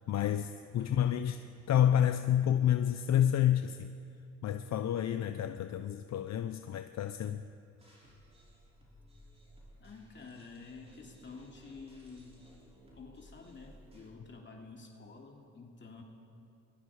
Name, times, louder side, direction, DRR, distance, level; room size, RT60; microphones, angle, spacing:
voice 1, 0.1-1.4 1.7-3.9 4.4-7.4, left 10 dB, 60° left, 0.8 m, -29 dB
voice 2, 0.8-1.3 9.8-12.4 12.9-16.0, left 4 dB, 40° left, 2.8 m, -50 dB
sound 1, 7.8-14.1, equal, 20° right, 6.2 m, -58 dB
29.5 x 21.5 x 4.9 m
cardioid pair, 90°, 30 cm